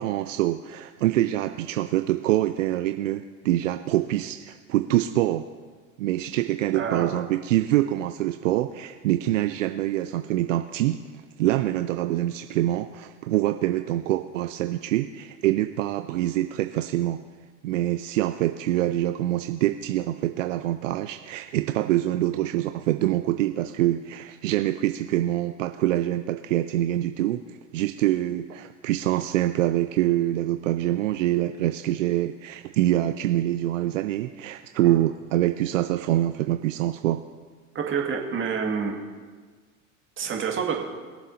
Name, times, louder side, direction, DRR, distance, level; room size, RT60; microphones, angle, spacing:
voice 1, 0.0-5.5 6.0-11.0 11.4-17.2 17.6-27.4 27.7-37.2, right 14 dB, 70° right, 8 dB, 0.6 m, -25 dB
voice 2, 6.7-7.3 34.8-35.0 37.7-39.0 40.2-40.8, right 6 dB, 30° right, 0 dB, 2.1 m, -28 dB
21.5 x 7.5 x 2.8 m, 1.5 s
hypercardioid pair, 85°, 39 cm